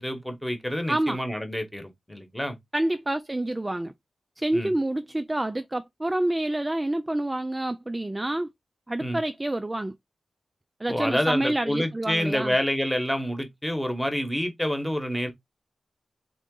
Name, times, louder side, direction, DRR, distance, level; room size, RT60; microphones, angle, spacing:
voice 1, 0.0-2.6 4.5-4.7 9.0-9.2 10.9-15.3, equal, 5° left, 1.1 m, -28 dB
voice 2, 0.9-1.2 2.7-3.9 4.4-8.5 8.9-9.9 10.8-12.5, right 1 dB, 15° right, 0.3 m, -28 dB
3.7 x 3.7 x 3.7 m
wide cardioid pair, 175°, 0 cm